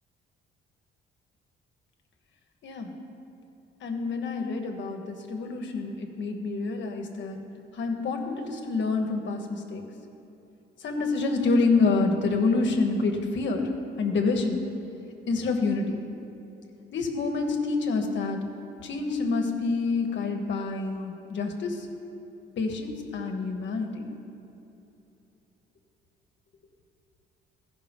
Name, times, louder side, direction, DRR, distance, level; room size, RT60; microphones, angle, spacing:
voice 1, 2.6-2.9 3.8-7.4 7.7-9.8 10.8-13.7 14.0-14.6 15.3-16.0 16.9-18.4 18.8-21.9 22.6-24.1, left 3 dB, 65° left, 3 dB, 1.2 m, -27 dB
14.0 x 5.9 x 5.3 m, 2.9 s
cardioid pair, 90°, 20 cm